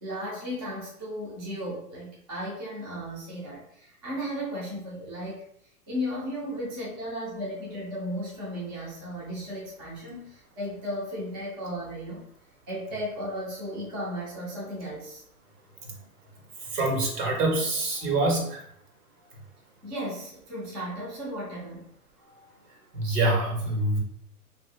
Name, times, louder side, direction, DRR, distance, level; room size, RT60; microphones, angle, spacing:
voice 1, 0.0-5.4 5.9-12.2 12.7-15.2 19.8-21.9, equal, 15° right, -7 dB, 0.4 m, -35 dB
voice 2, 16.7-18.6 22.9-24.0, right 2 dB, 80° right, -1 dB, 1.4 m, -25 dB
2.7 x 2.6 x 3.2 m, 0.69 s
hypercardioid pair, 150°, 46 cm